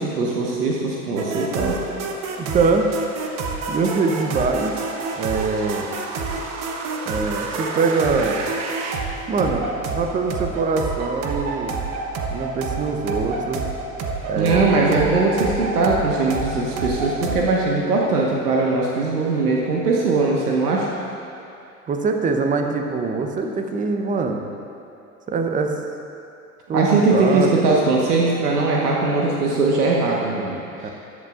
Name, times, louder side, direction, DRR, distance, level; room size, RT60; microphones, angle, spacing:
voice 1, 0.0-1.8 14.4-20.9 26.7-30.9, right 3 dB, 80° right, -3 dB, 1.4 m, -20 dB
sound 1, 1.2-17.6, right 4 dB, 35° right, 1.1 m, -28 dB
voice 2, 2.4-2.9 3.7-4.7 5.2-5.9 7.1-8.4 9.3-11.7 12.3-13.6 14.3-14.9 21.9-24.5 25.3-25.7 26.7-27.6 30.8-30.9, right 4 dB, 15° right, 4 dB, 0.8 m, -23 dB
14.5 x 11.0 x 2.5 m, 2.6 s
hypercardioid pair, 95°, 46 cm